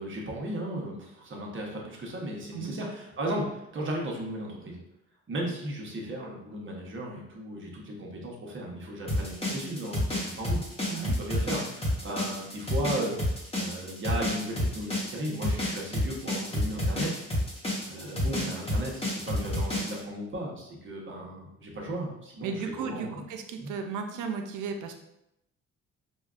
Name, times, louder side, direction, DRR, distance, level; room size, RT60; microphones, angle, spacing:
voice 1, 0.0-4.8 5.3-10.6 10.9-17.1 17.9-23.2 23.6-23.7, right 1 dB, 40° right, -2 dB, 1.1 m, -35 dB
sound 1, 9.1-20.0, left 1 dB, 20° left, 1.1 m, -30 dB
voice 2, 22.4-24.9, right 5 dB, 85° right, 5 dB, 0.5 m, -35 dB
4.8 x 2.3 x 2.4 m, 0.84 s
cardioid pair, 90°, 30 cm